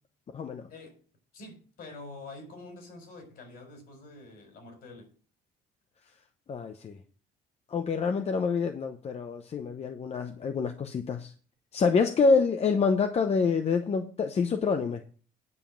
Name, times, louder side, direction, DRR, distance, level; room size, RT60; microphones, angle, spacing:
voice 1, 1.3-5.1, left 2 dB, 65° left, 4.5 m, -46 dB
voice 2, 6.5-7.0 7.7-11.3 11.7-15.0, left 5 dB, 40° left, 0.9 m, -27 dB
9.7 x 5.2 x 7.4 m
cardioid pair, 110°, 17 cm